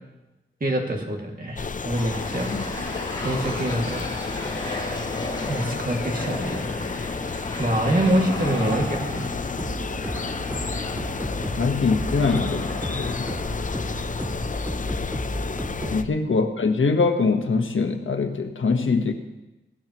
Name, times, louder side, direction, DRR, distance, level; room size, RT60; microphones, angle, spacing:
voice 1, 0.6-2.5 3.2-4.2 4.5-5.1 5.5-6.7 7.6-9.3 15.8-15.9, right 1 dB, 45° right, 1 dB, 2.1 m, -26 dB
sound 1, 1.6-16.0, left 5 dB, 40° left, 0.5 m, -31 dB
sound 2, 1.9-15.1, left 1 dB, 25° left, 4.1 m, -35 dB
sound 3, 9.6-16.1, right 1 dB, 10° right, 0.5 m, -34 dB
voice 2, 11.5-13.3 15.9-19.1, left 4 dB, 90° left, 6 dB, 1.1 m, -23 dB
17.0 x 13.0 x 3.0 m, 1.0 s
wide cardioid pair, 105°, 20 cm